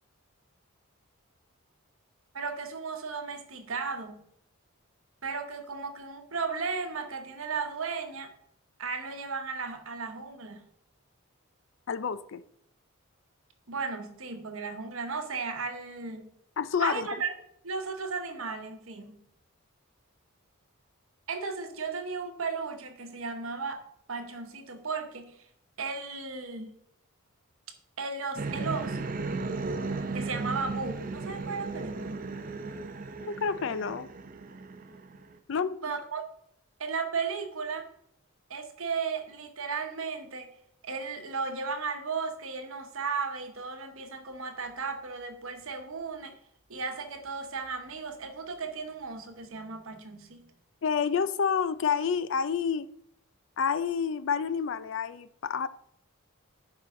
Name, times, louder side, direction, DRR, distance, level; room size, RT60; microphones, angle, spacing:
voice 1, 2.3-4.2 5.2-8.3 8.8-10.6 13.7-16.3 16.8-17.3 17.6-19.2 21.3-23.8 24.1-25.5 25.8-26.7 28.0-29.1 30.1-32.3 35.8-36.2 36.8-37.9 38.5-40.5 40.8-46.4 46.7-50.5, right 4 dB, 70° right, 1.0 m, -35 dB
voice 2, 11.9-12.4 16.6-17.2 33.2-34.1 35.5-35.8 50.8-52.9 53.6-55.7, left 6 dB, 55° left, 0.4 m, -29 dB
sound 1, 28.3-35.4, right 3 dB, 40° right, 0.5 m, -35 dB
11.0 x 4.8 x 3.7 m
head